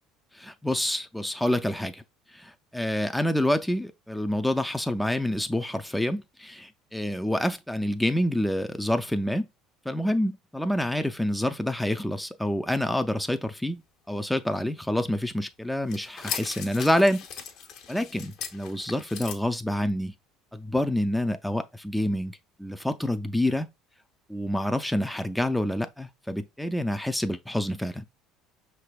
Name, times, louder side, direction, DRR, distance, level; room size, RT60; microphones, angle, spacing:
voice 1, 0.3-2.0 2.3-9.5 9.9-13.8 14.1-17.3 17.9-20.1 20.5-23.7 24.3-28.0, left 1 dB, 5° left, 0.3 m, -27 dB
sound 1, 15.9-19.3, left 8 dB, 65° left, 0.9 m, -38 dB
5.5 x 3.3 x 2.3 m
supercardioid pair, 90°, 0 cm